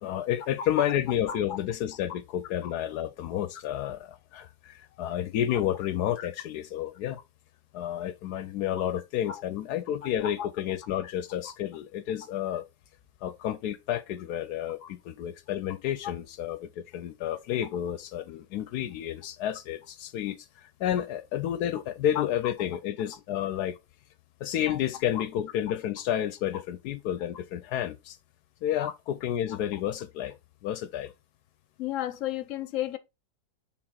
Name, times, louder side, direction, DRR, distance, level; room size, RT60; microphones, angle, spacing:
voice 1, 0.0-7.2 7.7-12.6 13.2-23.8 24.4-28.2 28.6-30.4 30.6-31.1, left 11 dB, 80° left, 1.1 m, -31 dB
voice 2, 1.3-1.6 2.6-2.7 6.2-6.3 9.3-9.4 10.2-10.5 11.0-11.1 14.8-14.9 16.0-16.1 22.1-22.2 24.7-24.8 25.1-25.2 28.8-28.9 31.8-33.0, left 11 dB, 60° left, 1.1 m, -33 dB
5.9 x 3.8 x 4.7 m
omnidirectional pair, 1.7 m